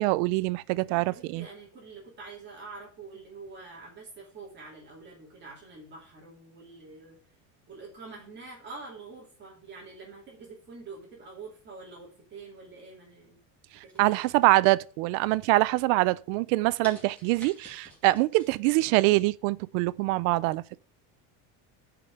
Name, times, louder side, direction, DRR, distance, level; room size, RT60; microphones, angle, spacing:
voice 1, 0.0-1.5 14.0-20.6, right 20 dB, 65° right, 0.5 m, -24 dB
voice 2, 0.9-7.2 7.7-13.4 13.8-14.2, right 4 dB, 30° right, 2.7 m, -46 dB
sound 1, 13.9-14.9 15.3-15.7 16.2-16.3 16.8-18.5 18.9-19.0, right 1 dB, 5° left, 2.5 m, -49 dB
6.8 x 5.1 x 6.8 m
cardioid pair, 160°, 39 cm